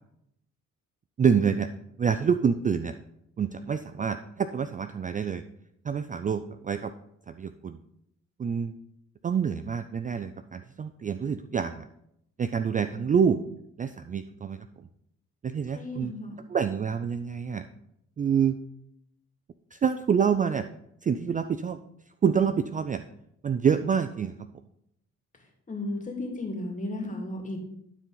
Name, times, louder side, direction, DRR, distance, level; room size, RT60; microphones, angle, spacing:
voice 1, 1.2-1.7 2.0-2.9 3.4-5.4 5.8-6.9 7.3-7.8 8.4-8.7 9.2-11.9 12.4-13.4 13.8-14.6 15.4-16.1 16.5-17.7 18.2-18.6 19.7-20.7 21.0-21.8 22.2-23.0 23.4-24.3, right 7 dB, 25° right, 10 dB, 0.4 m, -26 dB
voice 2, 15.7-16.4 25.7-27.6, left 2 dB, 25° left, 1 dB, 2.4 m, -34 dB
12.0 x 4.8 x 3.9 m, 0.77 s
cardioid pair, 90°, 30 cm